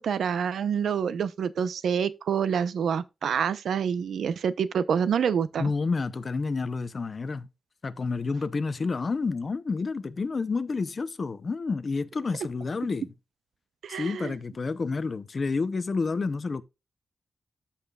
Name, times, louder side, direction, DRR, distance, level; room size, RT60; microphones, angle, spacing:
voice 1, 0.0-5.7 13.8-14.4, right 7 dB, 85° right, 0.7 m, -27 dB
voice 2, 5.6-7.5 7.8-13.1 13.9-16.6, left 4 dB, 35° left, 0.6 m, -29 dB
14.0 x 5.7 x 2.3 m
wide cardioid pair, 170°, 0 cm